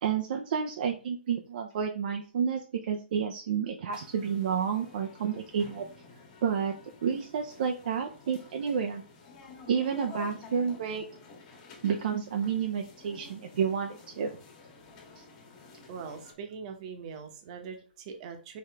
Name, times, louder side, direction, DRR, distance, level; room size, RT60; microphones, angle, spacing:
voice 1, 0.0-5.9 6.4-6.7 7.0-9.0 9.7-11.0 11.8-14.3 15.2-15.3, right 7 dB, 55° right, 3 dB, 0.6 m, -30 dB
sound 1, 3.9-16.3, left 3 dB, 30° left, 1.6 m, -51 dB
voice 2, 15.9-18.6, right 6 dB, 40° right, 5 dB, 1.1 m, -42 dB
4.8 x 3.1 x 3.4 m, 0.39 s
hypercardioid pair, 145°, 6 cm